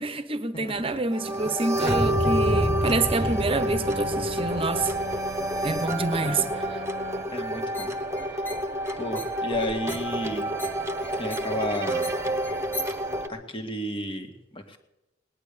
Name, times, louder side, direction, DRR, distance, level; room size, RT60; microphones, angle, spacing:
voice 1, 0.0-4.9 5.6-6.4, right 3 dB, 30° right, 1.1 m, -27 dB
sound 1, 1.1-13.3, right 1 dB, 15° right, 1.3 m, -28 dB
sound 2, 3.1-7.2, left 3 dB, 90° left, 3.4 m, -40 dB
voice 2, 7.3-7.9 9.0-10.4 11.2-12.1 13.3-14.3 14.5-14.8, left 1 dB, 30° left, 1.9 m, -32 dB
sound 3, 7.5-13.1, left 1 dB, 10° left, 1.5 m, -42 dB
19.0 x 10.5 x 6.9 m
head